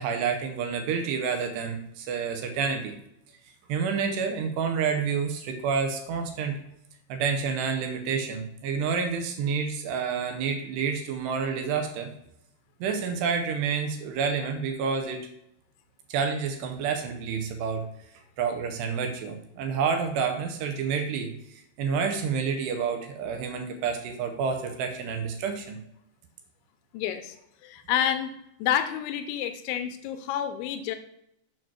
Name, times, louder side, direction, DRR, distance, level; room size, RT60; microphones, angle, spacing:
voice 1, 0.0-2.9 3.7-6.6 7.1-12.1 12.8-15.2 16.1-17.9 18.4-21.4 21.8-25.8, right 6 dB, 80° right, 5 dB, 2.8 m, -29 dB
voice 2, 26.9-27.4 27.6-28.3 28.6-31.0, left 10 dB, 90° left, 9 dB, 3.0 m, -29 dB
7.6 x 4.9 x 6.1 m, 0.78 s
omnidirectional pair, 5.2 m